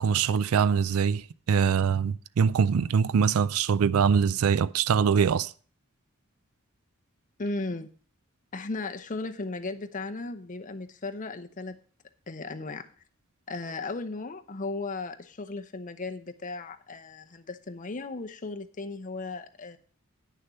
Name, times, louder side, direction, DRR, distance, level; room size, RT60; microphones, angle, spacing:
voice 1, 0.0-5.5, right 6 dB, 85° right, 0.4 m, -23 dB
voice 2, 7.4-7.9 8.5-11.8 12.3-12.9 13.5-19.8, left 3 dB, 40° left, 0.8 m, -36 dB
9.2 x 6.6 x 5.5 m
head